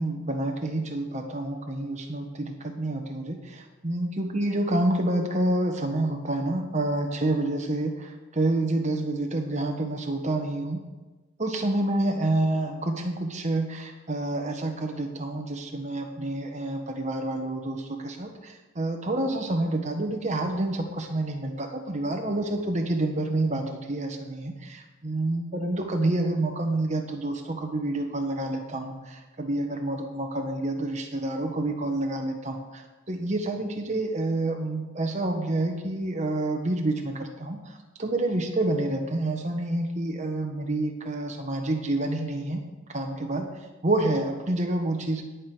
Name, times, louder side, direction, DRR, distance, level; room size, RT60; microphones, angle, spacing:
voice 1, 0.0-10.8 11.4-42.6 42.9-45.2, right 2 dB, 35° right, 3 dB, 1.3 m, -28 dB
17.5 x 6.2 x 5.0 m, 1.2 s
head